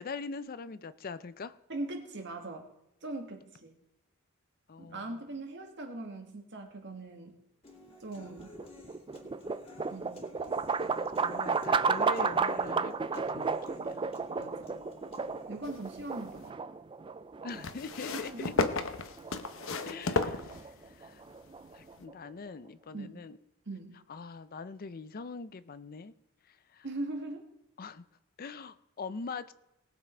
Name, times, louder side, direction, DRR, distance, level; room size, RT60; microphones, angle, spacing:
voice 1, 0.0-1.6 4.7-5.1 10.8-14.0 17.4-18.5 19.9-21.2 21.7-23.4 24.1-26.1 26.5-26.9 27.8-28.0 28.4-29.5, left 4 dB, 45° left, 14 dB, 0.5 m, -42 dB
voice 2, 1.7-2.7 3.0-3.7 4.8-7.4 8.0-8.6 9.9-10.2 14.3-14.8 15.5-16.6 18.1-18.7 22.9-23.3 23.6-23.9 26.8-27.5, right 2 dB, 55° right, 4 dB, 1.8 m, -40 dB
Human voice / Acoustic guitar, 7.6-15.6, left 2 dB, 25° left, 2.3 m, -53 dB
sound 1, 8.2-22.3, right 5 dB, 25° right, 0.4 m, -33 dB
sound 2, 15.6-16.5 17.6-21.1 22.0-22.1, left 3 dB, 65° left, 0.9 m, -33 dB
19.5 x 7.3 x 4.4 m, 0.90 s
head